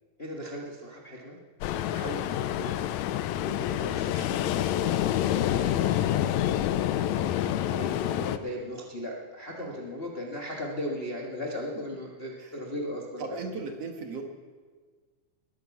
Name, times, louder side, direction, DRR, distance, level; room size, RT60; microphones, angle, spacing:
voice 1, 0.2-1.4 1.7-2.8 3.4-6.4 7.1-13.4, left 1 dB, 35° left, -2 dB, 0.9 m, -38 dB
Ocean, 1.6-8.4, left 12 dB, 80° left, 1.7 m, -27 dB
voice 2, 13.2-14.2, right 4 dB, 60° right, 3 dB, 2.1 m, -37 dB
20.5 x 9.4 x 7.2 m, 1.5 s
omnidirectional pair, 3.7 m